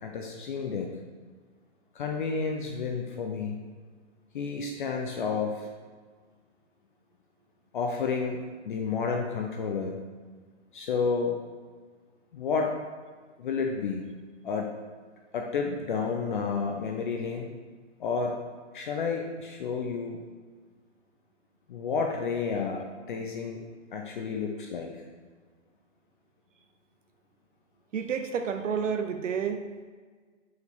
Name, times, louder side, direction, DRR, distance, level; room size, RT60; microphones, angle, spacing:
voice 1, 0.0-1.0 1.9-3.6 4.3-5.7 7.7-8.4 8.6-10.0 10.7-11.4 12.3-12.7 13.4-14.0 14.4-14.7 15.3-17.5 18.0-18.4 18.7-20.2 21.7-23.6 23.9-24.9, left 5 dB, 45° left, 2 dB, 0.6 m, -30 dB
voice 2, 27.9-29.6, right 6 dB, 90° right, 7 dB, 0.8 m, -30 dB
6.6 x 4.8 x 3.5 m, 1.5 s
hypercardioid pair, 160°, 37 cm